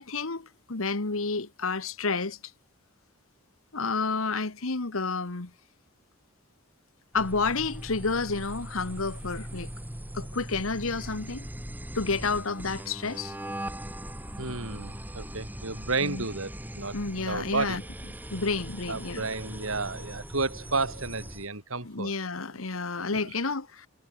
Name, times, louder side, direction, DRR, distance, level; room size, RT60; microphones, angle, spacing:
voice 1, 0.0-2.4 3.7-5.5 7.1-9.7 10.1-11.4 11.9-13.3 16.0-16.2 16.9-17.8 18.3-19.3 21.8-23.9, left 4 dB, 75° left, 1.5 m, -30 dB
sound 1, 7.1-21.5, equal, 10° right, 4.3 m, -40 dB
voice 2, 14.4-17.0 17.3-17.8 18.9-22.1 23.1-23.4, right 3 dB, 70° right, 4.8 m, -32 dB
head